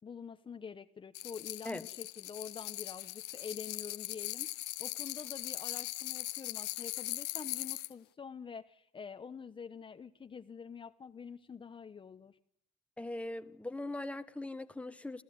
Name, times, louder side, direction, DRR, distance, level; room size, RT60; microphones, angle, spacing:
voice 1, 0.0-12.4, left 6 dB, 30° left, 1.1 m, -47 dB
sound 1, 1.1-7.9, left 18 dB, 90° left, 1.0 m, -40 dB
voice 2, 13.0-15.2, left 2 dB, 5° left, 1.3 m, -40 dB
29.0 x 15.0 x 9.5 m
cardioid pair, 110°, 17 cm